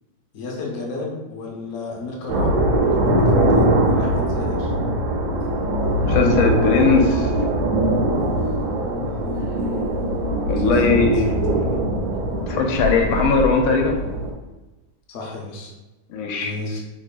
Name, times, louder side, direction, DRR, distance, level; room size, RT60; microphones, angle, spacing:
voice 1, 0.3-4.7 8.2-8.4 10.6-11.8 15.1-15.7 16.4-16.8, left 3 dB, 65° left, -2 dB, 0.8 m, -32 dB
sound 1, 2.3-14.3, right 1 dB, 80° right, 1.4 m, -21 dB
voice 2, 6.1-7.3 10.5-11.3 12.4-14.0 16.1-16.5, left 4 dB, 90° left, 3 dB, 1.4 m, -19 dB
3.6 x 3.0 x 2.4 m, 1.1 s
omnidirectional pair, 2.2 m